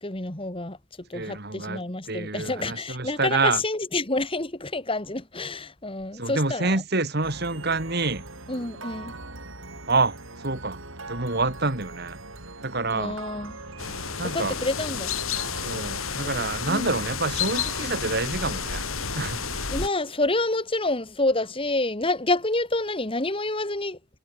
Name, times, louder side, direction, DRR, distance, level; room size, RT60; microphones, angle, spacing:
voice 1, 0.0-6.8 8.5-9.2 12.9-13.6 14.3-15.1 16.7-16.9 19.7-24.0, left 2 dB, 25° left, 2.2 m, -28 dB
voice 2, 1.1-3.6 6.2-8.2 9.9-10.8 11.1-12.2 12.6-13.2 14.2-14.6 15.6-18.8 19.1-19.7, right 3 dB, 50° right, 2.9 m, -27 dB
sound 1, 7.2-20.5, right 2 dB, 70° right, 7.8 m, -42 dB
sound 2, 13.8-19.9, left 6 dB, 85° left, 4.8 m, -31 dB
head